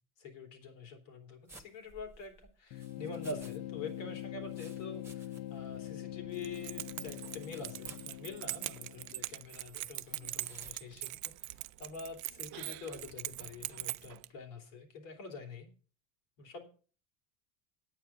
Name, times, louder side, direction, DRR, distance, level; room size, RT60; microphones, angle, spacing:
voice 1, 0.2-15.7 16.4-16.7, left 4 dB, 85° left, 3 dB, 3.2 m, -46 dB
sound 1, 1.5-3.6 3.9-5.7 5.9-6.0 7.0-8.1 8.7-8.9 10.4-10.8, right 2 dB, 5° right, 1.5 m, -57 dB
sound 2, 2.7-9.3, left 14 dB, 65° left, 0.6 m, -44 dB
Keys jangling, 6.3-14.3, right 19 dB, 55° right, 0.5 m, -42 dB
9.4 x 8.9 x 5.8 m, 0.40 s
supercardioid pair, 120°, 36 cm